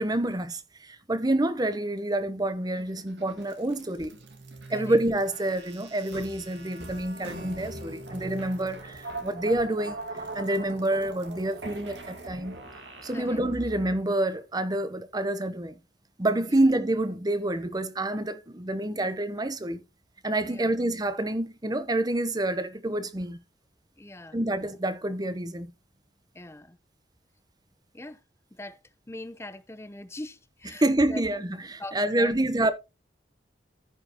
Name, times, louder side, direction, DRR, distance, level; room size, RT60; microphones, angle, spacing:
voice 1, 0.0-4.1 4.7-10.0 10.3-12.6 13.0-15.7 16.2-19.8 20.2-23.4 24.3-25.7 30.7-32.7, right 1 dB, 20° right, 0.8 m, -27 dB
sound 1, 2.8-14.0, right 2 dB, 75° right, 1.6 m, -41 dB
voice 2, 24.0-24.4 26.3-26.8 27.9-28.2 28.5-28.8 29.1-31.2 31.8-32.4, left 1 dB, 15° left, 0.6 m, -41 dB
14.5 x 5.2 x 3.0 m
head